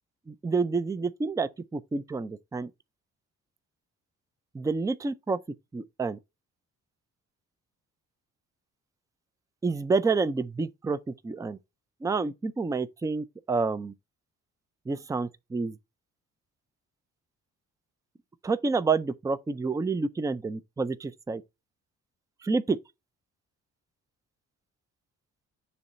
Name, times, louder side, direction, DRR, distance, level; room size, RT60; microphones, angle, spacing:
voice 1, 0.3-2.7 4.5-5.4 5.7-6.2 9.6-11.6 12.0-13.9 14.9-15.8 18.4-21.4 22.4-22.8, right 4 dB, 10° right, 0.4 m, -29 dB
6.9 x 3.1 x 5.3 m
cardioid pair, 90°, 30 cm